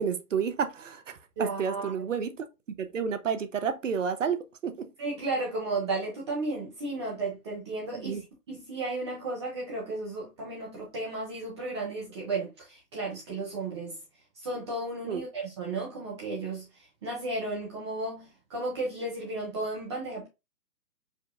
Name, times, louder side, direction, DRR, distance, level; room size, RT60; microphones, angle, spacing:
voice 1, 0.0-2.4 2.8-4.9 8.0-8.2 15.1-15.2, right 7 dB, 55° right, 0.7 m, -30 dB
voice 2, 1.4-1.9 5.0-8.2 8.5-14.0 14.4-20.3, right 2 dB, 20° right, 0.8 m, -34 dB
4.9 x 2.6 x 2.4 m
figure-of-eight pair, 140°, 47 cm